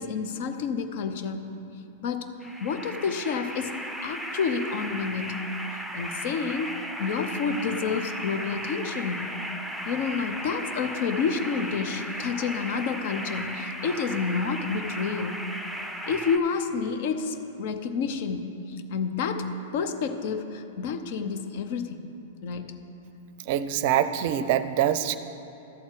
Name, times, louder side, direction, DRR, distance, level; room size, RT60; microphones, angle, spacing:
voice 1, 0.0-1.5 2.0-2.3 2.6-3.7 4.0-5.4 5.7-9.3 9.9-15.4 16.1-19.5 19.7-22.0 22.4-22.7, left 5 dB, 60° left, 8 dB, 0.8 m, -29 dB
sound 1, 2.4-16.4, equal, ahead, 0.7 m, -36 dB
voice 2, 23.5-25.2, right 11 dB, 55° right, 13 dB, 0.5 m, -24 dB
12.5 x 4.4 x 7.6 m, 2.8 s
hypercardioid pair, 115°, 0 cm